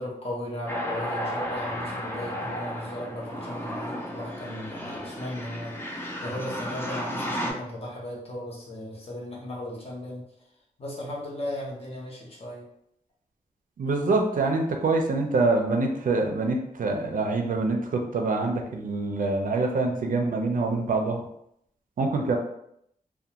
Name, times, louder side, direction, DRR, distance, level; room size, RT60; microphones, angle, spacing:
voice 1, 0.0-10.2 10.8-12.6 19.9-20.1, left 1 dB, 40° left, -4 dB, 0.8 m, -36 dB
sound 1, 0.7-7.5, equal, 15° left, 0.4 m, -33 dB
voice 2, 13.8-21.3 22.0-22.4, right 3 dB, 65° right, 2 dB, 0.4 m, -25 dB
2.4 x 2.2 x 2.8 m, 0.74 s
wide cardioid pair, 140°, 15 cm